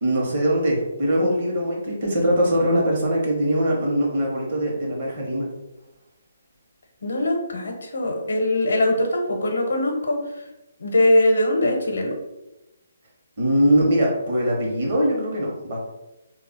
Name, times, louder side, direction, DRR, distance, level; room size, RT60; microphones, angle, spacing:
voice 1, 0.0-5.5 13.4-15.8, equal, 40° right, -2 dB, 0.8 m, -22 dB
voice 2, 7.0-10.5 10.8-12.1, left 1 dB, 80° left, 2 dB, 0.7 m, -21 dB
2.3 x 2.1 x 3.6 m, 0.95 s
hypercardioid pair, 170°, 0 cm